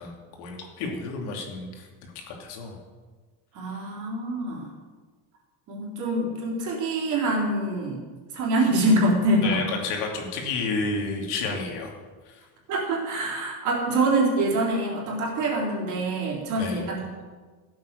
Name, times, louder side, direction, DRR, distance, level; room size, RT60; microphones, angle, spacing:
voice 1, 0.0-2.8 3.7-3.9 9.4-11.9 12.2-12.4 16.6-16.9, left 4 dB, 85° left, 1 dB, 3.0 m, -31 dB
voice 2, 3.5-4.7 5.7-8.0 8.3-9.6 12.7-17.0, right 1 dB, 45° right, -2 dB, 3.7 m, -25 dB
14.5 x 8.1 x 6.8 m, 1.4 s
cardioid pair, 175°, 41 cm